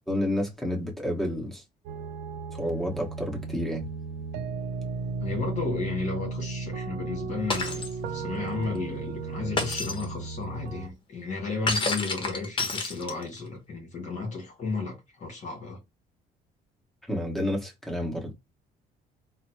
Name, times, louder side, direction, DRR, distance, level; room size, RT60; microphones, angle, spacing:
voice 1, 0.1-1.6 2.5-3.9 17.1-18.3, left 1 dB, ahead, 1.3 m, -30 dB
sound 1, 1.9-10.9, right 4 dB, 80° right, 0.6 m, -35 dB
voice 2, 5.2-15.8, left 4 dB, 45° left, 2.0 m, -33 dB
Shatter, 7.5-7.9 9.6-10.1 11.7-13.4, left 3 dB, 30° left, 1.3 m, -29 dB
4.0 x 2.2 x 3.0 m
cardioid pair, 110°, 17 cm